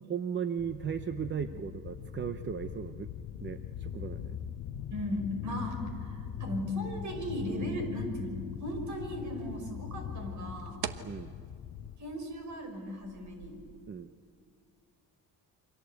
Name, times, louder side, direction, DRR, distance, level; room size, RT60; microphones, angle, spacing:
voice 1, 0.0-3.1 3.4-4.4 11.0-11.3 13.9-14.1, right 7 dB, 30° right, 9 dB, 0.7 m, -36 dB
sound 1, 0.6-12.0, left 9 dB, 70° left, 1.1 m, -41 dB
voice 2, 4.9-10.8 12.0-13.5, equal, 50° right, 5 dB, 5.8 m, -37 dB
sound 2, 8.5-13.9, right 9 dB, 70° right, 1.3 m, -46 dB
29.0 x 25.0 x 8.2 m, 2.3 s
cardioid pair, 160°, 38 cm